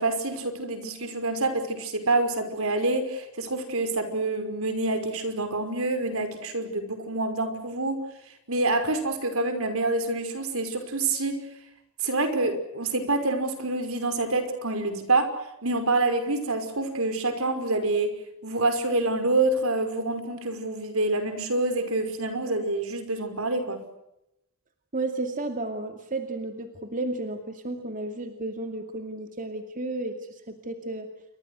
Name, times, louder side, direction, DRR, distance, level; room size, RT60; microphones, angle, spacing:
voice 1, 0.0-8.0 8.5-11.3 12.0-15.3 15.6-18.1 18.4-23.8, right 2 dB, 75° right, 8 dB, 5.4 m, -27 dB
voice 2, 24.9-31.1, right 2 dB, 40° right, 6 dB, 2.5 m, -33 dB
29.0 x 24.5 x 6.5 m, 0.83 s
head